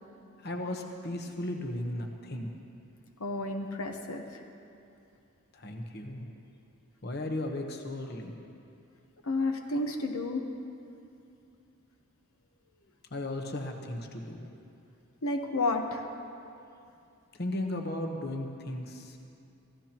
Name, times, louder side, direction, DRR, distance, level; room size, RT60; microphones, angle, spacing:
voice 1, 0.4-2.5 5.5-6.3 7.0-8.3 13.1-14.5 17.3-19.2, left 1 dB, 45° left, 3 dB, 1.1 m, -36 dB
voice 2, 3.2-4.4 9.2-10.5 15.2-16.1, left 2 dB, 75° left, 3 dB, 1.0 m, -31 dB
25.5 x 15.0 x 3.0 m, 2.6 s
head